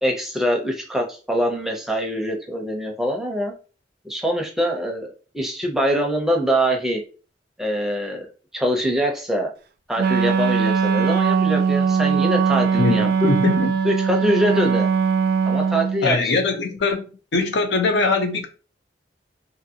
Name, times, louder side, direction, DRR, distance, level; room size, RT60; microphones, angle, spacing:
voice 1, 0.0-3.5 4.0-7.0 7.6-8.3 8.5-9.5 9.9-13.1 13.8-14.9 15.5-16.4, equal, ahead, 0.5 m, -24 dB
Wind instrument woodwind instrument, 10.0-16.1, right 6 dB, 60° right, 0.3 m, -20 dB
voice 2, 12.8-13.7 16.0-17.0 17.3-18.5, left 3 dB, 80° left, 0.6 m, -21 dB
2.6 x 2.6 x 2.7 m
head